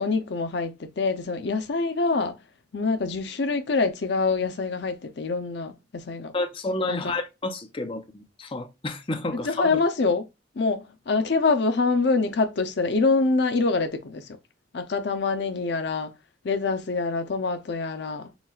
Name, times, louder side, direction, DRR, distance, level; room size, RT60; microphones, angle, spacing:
voice 1, 0.0-2.4 2.7-6.3 6.9-7.1 9.4-10.3 10.6-14.3 14.7-16.1 16.4-18.3, left 3 dB, 70° left, 0.5 m, -25 dB
voice 2, 6.3-9.8, left 2 dB, 30° left, 0.7 m, -30 dB
6.9 x 2.4 x 2.3 m
head